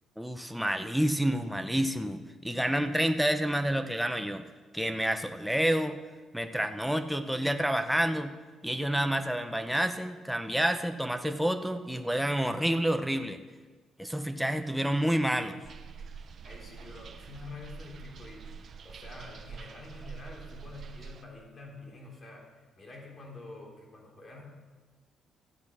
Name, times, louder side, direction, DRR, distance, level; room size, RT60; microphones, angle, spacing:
voice 1, 0.2-4.4 4.7-6.0 6.3-8.3 8.6-13.4 14.0-15.6, right 1 dB, ahead, 7 dB, 0.8 m, -29 dB
sound 1, 15.6-21.2, right 6 dB, 55° right, 0.7 m, -46 dB
voice 2, 16.4-24.4, left 3 dB, 40° left, -1 dB, 3.6 m, -47 dB
13.5 x 8.3 x 6.1 m, 1.4 s
cardioid pair, 90°, 0 cm